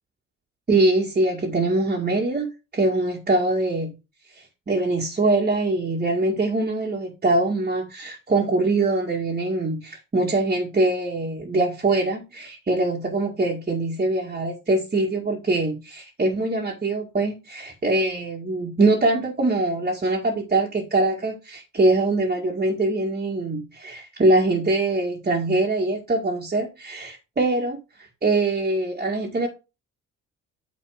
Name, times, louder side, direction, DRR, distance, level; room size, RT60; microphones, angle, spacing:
voice 1, 0.7-2.5 2.7-3.9 4.3-29.5, right 2 dB, 30° right, -2 dB, 2.0 m, -23 dB
9.1 x 4.0 x 5.0 m, 0.29 s
cardioid pair, 90°, 30 cm